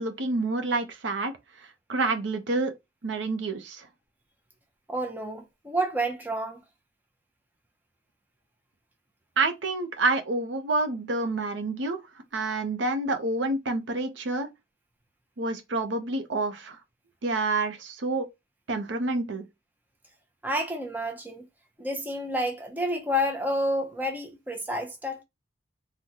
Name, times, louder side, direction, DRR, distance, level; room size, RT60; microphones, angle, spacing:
voice 1, 0.0-1.3 1.9-2.7 3.0-3.9 9.4-12.0 12.3-14.5 15.4-16.8 17.2-18.3 18.7-19.5, right 3 dB, 75° right, 0.6 m, -28 dB
voice 2, 4.9-6.6 20.4-21.5 21.8-25.2, equal, 10° right, 0.5 m, -29 dB
3.7 x 2.2 x 2.8 m
head